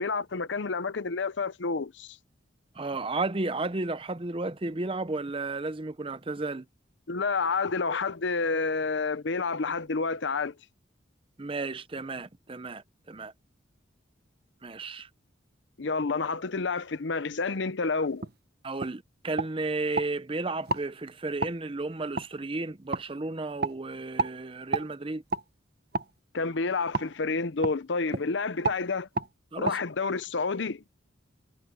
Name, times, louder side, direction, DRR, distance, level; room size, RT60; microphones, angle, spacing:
voice 1, 0.0-2.2 7.1-10.5 15.8-18.3 26.3-29.1 29.6-30.8, left 4 dB, 70° left, 0.7 m, -29 dB
voice 2, 2.7-6.7 11.4-13.3 14.6-15.1 18.6-25.2 29.5-29.8, right 3 dB, 25° right, 0.6 m, -33 dB
sound 1, 18.2-18.4 18.8-18.9 19.4-20.1 20.7-20.9 21.4-21.6 22.2-22.3 22.9-23.0 23.6-23.8 24.2-24.3 24.7-24.9 25.3-25.4 25.9-26.1 26.9-27.1 27.6-27.8 28.1-28.3 28.6-28.8 29.1-29.3 29.6-29.8, right 4 dB, 50° right, 1.1 m, -30 dB
head